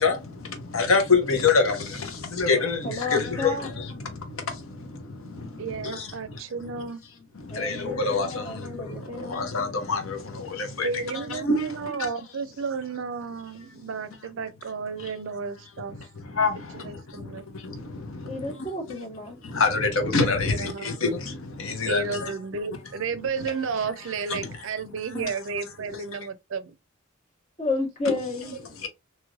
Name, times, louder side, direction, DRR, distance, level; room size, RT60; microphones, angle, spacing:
voice 1, 0.0-6.9 7.3-12.1 15.0-15.1 15.9-19.0 19.4-22.3 23.4-23.5 24.3-24.6 25.1-25.3 25.9-26.3 28.8-28.9, left 4 dB, 90° left, 0.8 m, -27 dB
voice 2, 2.8-3.7 7.5-9.5 18.2-19.4 27.6-28.6, left 2 dB, 35° left, 1.6 m, -31 dB
voice 3, 5.6-7.0 10.8-16.0 16.7-17.5 20.4-20.9 21.9-26.8, right 5 dB, 70° right, 0.4 m, -32 dB
3.1 x 2.9 x 2.3 m
head